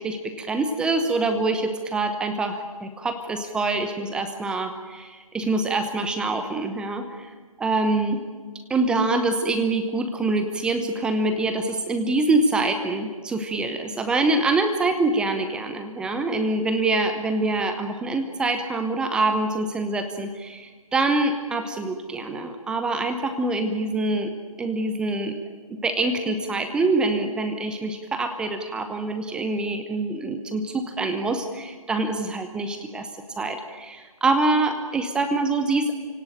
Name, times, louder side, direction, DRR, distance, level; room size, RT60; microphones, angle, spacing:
voice 1, 0.0-8.2 8.7-24.3 24.6-25.4 25.7-33.1 33.4-36.0, right 2 dB, 5° right, 7 dB, 0.9 m, -25 dB
29.0 x 17.5 x 9.2 m, 1.5 s
figure-of-eight pair, 145°, 19 cm